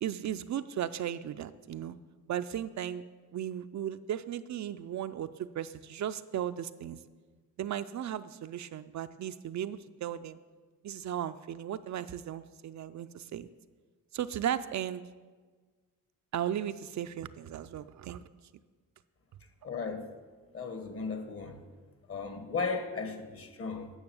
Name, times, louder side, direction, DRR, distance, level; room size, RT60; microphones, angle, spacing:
voice 1, 0.0-2.0 2.3-3.0 3.3-7.0 7.6-10.4 10.8-13.5 14.1-15.0 16.3-18.2, right 10 dB, 60° right, 0.4 m, -36 dB
voice 2, 19.6-20.1 20.5-21.6 22.1-23.9, left 4 dB, 40° left, 1.3 m, -36 dB
9.6 x 6.4 x 6.9 m
cardioid pair, 90°, 33 cm